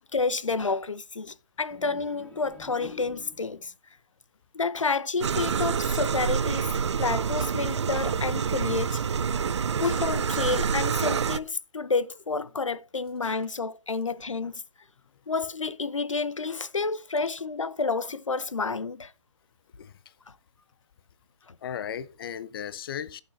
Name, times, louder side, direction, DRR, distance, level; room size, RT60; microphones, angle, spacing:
voice 1, 0.1-3.7 4.5-6.7 7.0-9.0 9.8-14.6 15.3-19.1 20.3-20.4 21.5-21.6, left 4 dB, 90° left, 0.8 m, -29 dB
sound 1, 1.7-3.7, left 3 dB, 5° left, 2.1 m, -47 dB
sound 2, 5.2-11.4, right 6 dB, 65° right, 0.7 m, -27 dB
voice 2, 19.8-20.1 21.6-23.2, left 9 dB, 50° left, 0.6 m, -36 dB
15.5 x 6.9 x 2.7 m
figure-of-eight pair, 140°, 16 cm